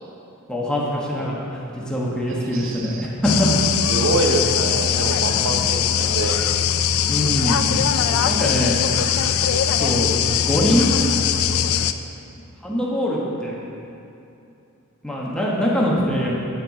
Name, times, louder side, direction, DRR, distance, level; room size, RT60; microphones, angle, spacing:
voice 1, 0.5-3.5 7.1-7.7 8.2-8.8 9.8-10.1 10.4-10.9 12.6-13.6 15.0-16.4, equal, 5° left, -5 dB, 1.2 m, -23 dB
voice 2, 2.3-3.1 3.8-6.3, right 2 dB, 70° right, 2 dB, 0.9 m, -25 dB
sound 1, 3.2-11.9, left 8 dB, 85° left, 0.4 m, -21 dB
8.8 x 6.7 x 4.8 m, 2.7 s
head